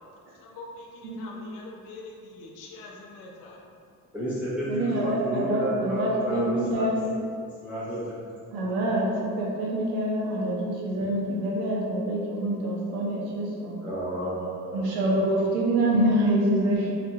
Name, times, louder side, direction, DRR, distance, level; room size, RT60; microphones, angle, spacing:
voice 1, 0.4-3.6, left 2 dB, 65° left, -1 dB, 0.5 m, -44 dB
voice 2, 4.1-6.8 7.6-8.1 13.8-14.9, equal, 5° right, -10 dB, 0.4 m, -31 dB
voice 3, 4.7-7.0 8.5-13.7 14.7-16.9, right 1 dB, 90° right, -3 dB, 0.6 m, -26 dB
2.4 x 2.1 x 2.7 m, 2.3 s
cardioid pair, 115°, 34 cm